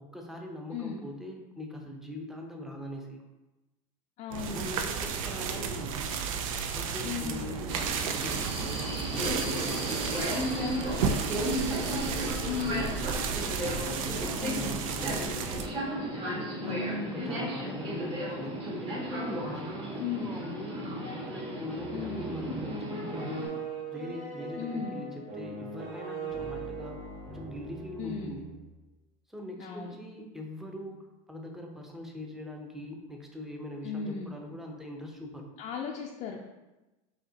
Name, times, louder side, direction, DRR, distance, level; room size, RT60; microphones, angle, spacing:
voice 1, 0.0-3.2 4.5-6.1 6.7-13.4 13.6-15.6 16.6-20.7 21.2-23.6 23.9-27.0 27.3-28.5 29.3-31.0 31.3-35.5, left 1 dB, ahead, 1 dB, 0.6 m, -42 dB
voice 2, 0.7-1.0 4.2-4.6 7.0-7.4 12.4-12.8 14.4-14.8 16.6-17.7 20.0-20.4 21.9-22.3 24.6-25.0 28.0-28.4 29.6-30.0 33.8-34.4 35.6-36.5, left 6 dB, 40° left, 0 dB, 0.4 m, -36 dB
sound 1, 4.3-15.7, right 6 dB, 85° right, 0.4 m, -33 dB
Subway metro underground, 7.7-23.5, equal, 35° right, 1.2 m, -35 dB
sound 2, 21.7-28.7, right 3 dB, 55° right, 0.9 m, -40 dB
5.0 x 2.8 x 2.7 m, 1.1 s
supercardioid pair, 120°, 17 cm